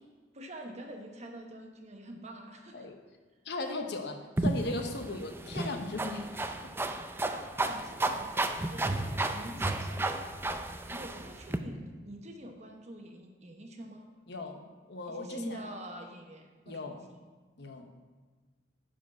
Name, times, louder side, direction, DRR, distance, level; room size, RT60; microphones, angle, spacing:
voice 1, 0.3-2.9 7.1-10.2 10.9-14.1 15.1-17.2, right 1 dB, 40° right, 3 dB, 1.2 m, -46 dB
voice 2, 3.4-6.3 6.6-6.7 14.3-15.6 16.7-17.0 17.6-17.9, left 2 dB, 70° left, 5 dB, 1.0 m, -38 dB
sound 1, 4.4-11.6, right 2 dB, 15° right, 0.4 m, -33 dB
10.0 x 5.0 x 6.1 m, 1.4 s
head